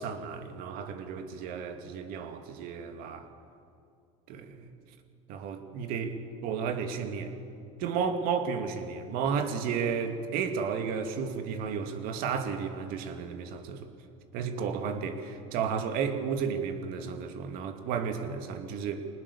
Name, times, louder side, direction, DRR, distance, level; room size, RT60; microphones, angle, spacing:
voice 1, 0.0-3.3 4.3-4.7 5.3-7.3 7.8-13.9 14.3-19.1, right 6 dB, 65° right, 6 dB, 2.6 m, -33 dB
25.0 x 19.5 x 7.2 m, 2.6 s
supercardioid pair, 95°, 16 cm